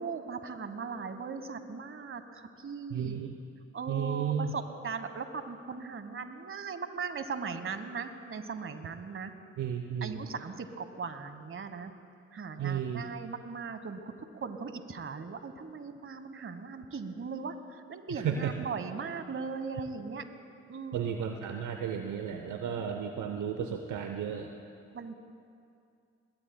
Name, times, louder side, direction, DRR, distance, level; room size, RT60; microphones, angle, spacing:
voice 1, 0.0-3.2 3.7-9.3 10.0-11.9 12.3-20.2 20.7-21.1 24.9-25.1, right 5 dB, 40° right, 9 dB, 1.2 m, -39 dB
voice 2, 2.9-3.4 3.9-4.5 9.6-10.2 12.6-13.0 18.2-18.5 20.9-24.5, right 8 dB, 65° right, 5 dB, 0.8 m, -33 dB
21.0 x 17.0 x 2.2 m, 2.4 s
hypercardioid pair, 45°, 33 cm